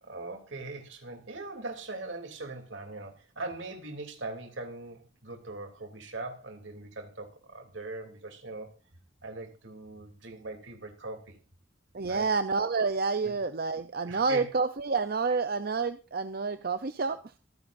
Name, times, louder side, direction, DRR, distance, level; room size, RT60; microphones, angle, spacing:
voice 1, 0.0-8.8 9.2-11.4 12.1-12.3 13.2-13.3 14.1-14.5, right 2 dB, 75° right, 5 dB, 3.0 m, -41 dB
voice 2, 11.9-17.2, right 4 dB, 50° right, 11 dB, 0.6 m, -29 dB
24.5 x 10.0 x 2.6 m, 0.30 s
head